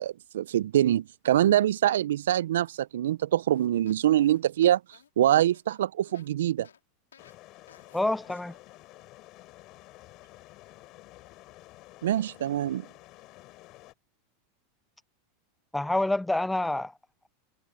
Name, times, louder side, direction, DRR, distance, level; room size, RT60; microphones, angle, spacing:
voice 1, 0.0-6.7 12.0-12.9, right 12 dB, 75° right, 0.5 m, -24 dB
sound 1, 3.5-6.3 6.6-6.8 7.1-7.4 7.7-8.0 8.3-8.5, left 8 dB, 90° left, 2.9 m, -56 dB
sound 2, 7.2-13.9, left 19 dB, 50° left, 5.7 m, -51 dB
voice 2, 7.9-8.6 15.7-16.9, left 2 dB, 5° left, 0.5 m, -27 dB
hypercardioid pair, 95°, 0 cm